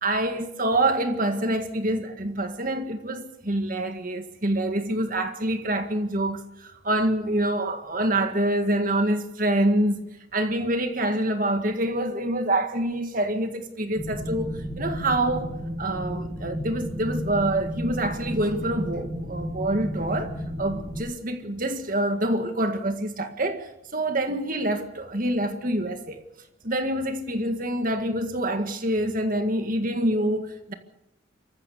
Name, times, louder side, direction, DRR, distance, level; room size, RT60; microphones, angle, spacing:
voice 1, 0.0-20.3 20.6-26.2 26.6-30.7, right 1 dB, 45° right, 1.8 m, -26 dB
sound 1, 13.9-21.0, equal, 25° right, 8.0 m, -33 dB
26.0 x 15.0 x 6.7 m
head